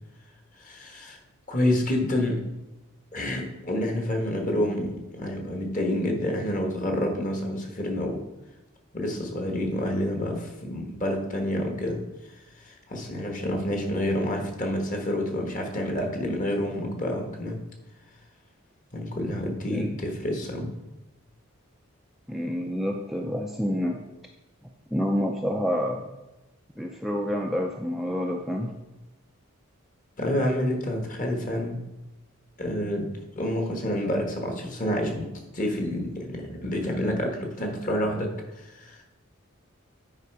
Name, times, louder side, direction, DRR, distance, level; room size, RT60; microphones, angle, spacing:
voice 1, 0.6-1.2 1.5-2.4 3.1-8.2 8.9-17.6 18.9-20.7 30.2-31.8 32.6-33.1 33.4-35.3 35.5-39.0, left 1 dB, 35° left, 2 dB, 1.4 m, -28 dB
voice 2, 22.3-24.0 24.9-26.1 26.8-28.7, equal, ahead, 0 dB, 0.4 m, -28 dB
9.6 x 5.0 x 4.7 m, 1.0 s
head